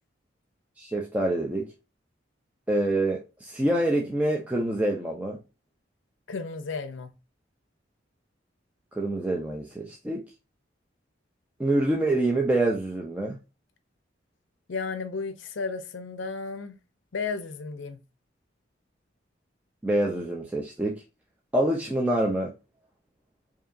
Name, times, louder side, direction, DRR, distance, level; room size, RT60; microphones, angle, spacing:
voice 1, 0.8-1.7 2.7-5.4 8.9-10.2 11.6-13.4 19.8-21.0 21.5-22.5, right 1 dB, 10° right, 0.5 m, -26 dB
voice 2, 6.3-7.1 14.7-16.8 17.1-18.0, left 4 dB, 80° left, 0.6 m, -33 dB
4.9 x 2.7 x 2.6 m
head